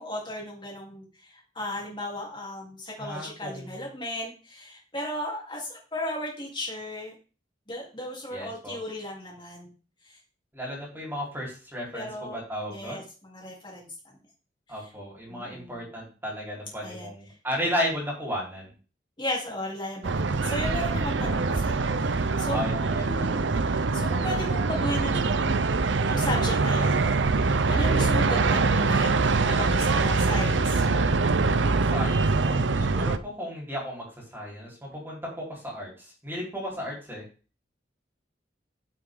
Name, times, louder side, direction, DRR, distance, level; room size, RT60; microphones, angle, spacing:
voice 1, 0.0-7.1 7.7-9.7 10.1-10.2 11.9-12.4 12.7-14.1 14.7-14.8 15.3-15.9 16.8-17.1 19.2-23.5 23.9-25.5 26.1-30.8, left 1 dB, 25° left, -3 dB, 3.7 m, -35 dB
voice 2, 3.0-3.8 8.3-8.8 10.5-13.0 14.7-18.7 22.5-23.3 31.8-37.2, equal, 10° right, -3 dB, 4.5 m, -34 dB
sound 1, 20.0-33.2, right 3 dB, 80° right, 0.7 m, -24 dB
15.5 x 6.4 x 3.9 m, 0.36 s
head